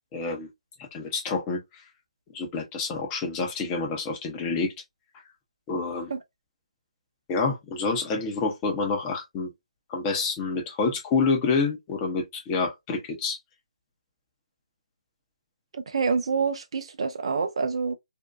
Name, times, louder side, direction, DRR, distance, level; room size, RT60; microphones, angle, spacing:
voice 1, 0.1-0.5 0.8-1.6 2.3-4.7 5.7-6.1 7.3-9.5 9.9-13.4, left 4 dB, 20° left, 0.7 m, -28 dB
voice 2, 15.7-17.9, right 5 dB, 55° right, 0.6 m, -27 dB
2.6 x 2.3 x 2.3 m
figure-of-eight pair, 150°, 4 cm